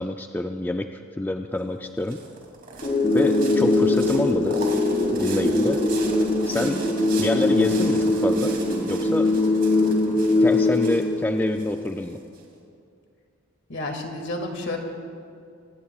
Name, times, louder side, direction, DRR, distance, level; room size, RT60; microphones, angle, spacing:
voice 1, 0.0-2.2 3.1-4.6 5.1-5.8 6.5-6.8 7.2-8.5 8.9-9.3 10.4-12.2, left 1 dB, 10° left, 5 dB, 0.4 m, -27 dB
sound 1, 1.6-12.4, right 3 dB, 45° right, 2.8 m, -38 dB
sound 2, 2.8-11.8, left 2 dB, 35° left, 4.0 m, -22 dB
voice 2, 13.7-14.8, left 2 dB, 60° left, 3 dB, 2.2 m, -30 dB
25.5 x 19.0 x 2.4 m, 2.4 s
head